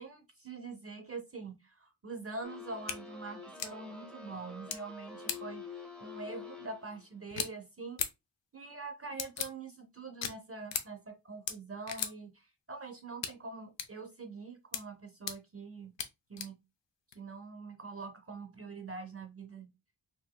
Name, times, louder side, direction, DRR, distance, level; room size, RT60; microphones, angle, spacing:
voice 1, 0.0-8.0 8.5-16.0 16.3-16.6 17.1-19.7, right 3 dB, 30° right, 0.6 m, -44 dB
sound 1, 2.4-7.0, left 4 dB, ahead, 0.7 m, -47 dB
sound 2, 2.9-3.0 3.6-3.7 4.7-4.8 5.3-5.4 7.3-7.5 8.0-8.1 9.2-9.5 10.2-10.3 10.7-10.8 11.5-11.6 11.9-12.1 13.2-13.3 13.8-13.9 14.7-14.8 15.3-15.4 16.0-16.1 16.4-16.5 17.1-17.2, left 7 dB, 80° left, 0.6 m, -35 dB
4.2 x 2.6 x 2.2 m
wide cardioid pair, 85°, 43 cm